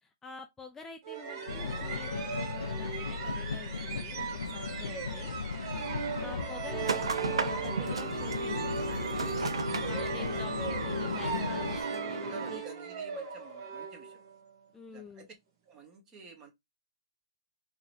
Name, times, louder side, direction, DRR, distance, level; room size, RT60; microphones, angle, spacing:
voice 1, 0.0-5.3 6.2-8.7 9.8-12.6 14.7-15.3, left 5 dB, 15° left, 0.5 m, -47 dB
sound 1, 1.0-14.5, right 6 dB, 50° right, 1.2 m, -39 dB
sound 2, 1.5-11.8, left 5 dB, 90° left, 0.4 m, -37 dB
sound 3, 6.8-12.6, right 4 dB, 90° right, 0.6 m, -35 dB
voice 2, 8.7-9.5 12.2-14.2 14.9-15.3 15.6-16.5, right 4 dB, 25° right, 1.3 m, -49 dB
3.9 x 3.0 x 2.7 m
hypercardioid pair, 130°, 3 cm